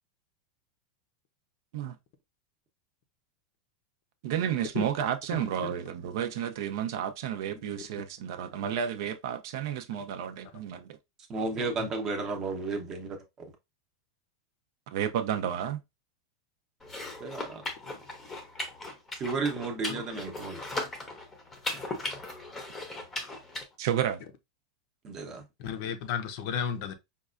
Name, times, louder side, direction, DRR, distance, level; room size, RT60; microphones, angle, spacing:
voice 1, 4.2-11.0 14.9-15.8 23.8-24.2, right 9 dB, 55° right, 0.5 m, -31 dB
voice 2, 5.3-5.7 11.8-11.9 17.8-18.0 19.9-20.0 25.6-26.9, left 8 dB, 45° left, 0.6 m, -34 dB
voice 3, 11.3-13.5 17.2-17.6 19.2-20.6 25.0-25.4, right 3 dB, 20° right, 0.8 m, -33 dB
sound 1, 16.8-23.6, left 2 dB, 10° left, 0.7 m, -38 dB
5.2 x 2.3 x 2.4 m
supercardioid pair, 170°, 2 cm